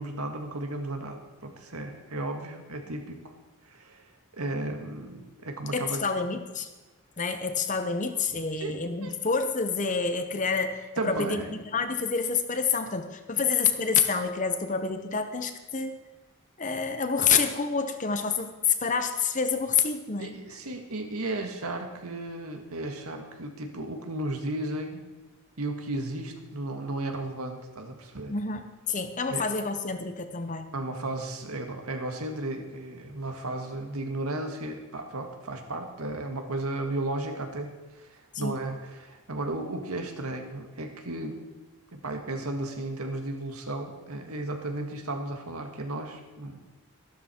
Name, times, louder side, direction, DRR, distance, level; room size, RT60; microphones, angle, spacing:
voice 1, 0.0-3.2 3.7-4.1 4.3-6.0 8.6-9.1 11.0-11.5 20.2-25.0 25.6-28.6 29.3-29.5 30.7-41.4 41.9-46.6, right 2 dB, 85° right, 5 dB, 1.8 m, -34 dB
voice 2, 5.7-6.7 7.2-16.0 16.6-20.4 28.3-28.6 28.9-30.7 38.3-38.6, left 5 dB, 35° left, 8 dB, 0.9 m, -28 dB
13.0 x 12.5 x 4.5 m, 1.2 s
head